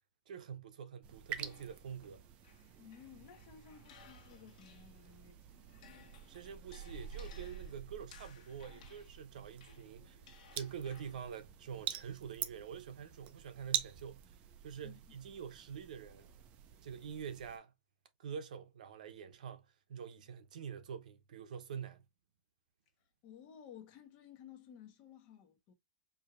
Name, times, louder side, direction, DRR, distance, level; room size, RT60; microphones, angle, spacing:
voice 1, 0.3-2.2 6.3-10.2 10.5-14.4 14.6-16.3 16.8-17.7 18.2-22.0, right 7 dB, 75° right, 0.8 m, -46 dB
sound 1, 1.0-17.6, right 10 dB, 30° right, 0.5 m, -46 dB
sound 2, 1.4-5.2 5.5-11.4, left 8 dB, 65° left, 1.4 m, -61 dB
voice 2, 2.8-5.8 14.8-15.0 23.2-25.7, left 9 dB, 35° left, 1.1 m, -56 dB
4.7 x 2.7 x 2.4 m
supercardioid pair, 155°, 4 cm